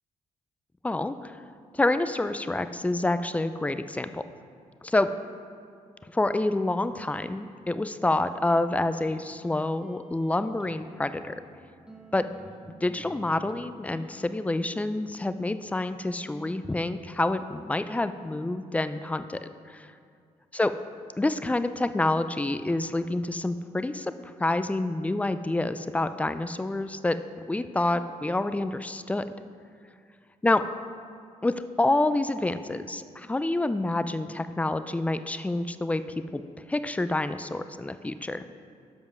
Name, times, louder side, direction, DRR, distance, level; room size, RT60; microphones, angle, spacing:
voice 1, 0.8-1.4 1.7-4.2 4.8-5.1 6.1-11.4 12.1-12.2 12.8-19.4 19.7-19.9 20.5-20.7 21.2-29.3 30.4-30.6 31.4-36.0 36.3-36.4 36.7-38.4, left 2 dB, 10° left, 11 dB, 0.4 m, -27 dB
sound 1, 8.8-16.8, left 1 dB, 5° right, 0.8 m, -51 dB
7.0 x 5.3 x 6.0 m, 2.3 s
cardioid pair, 75°, 13 cm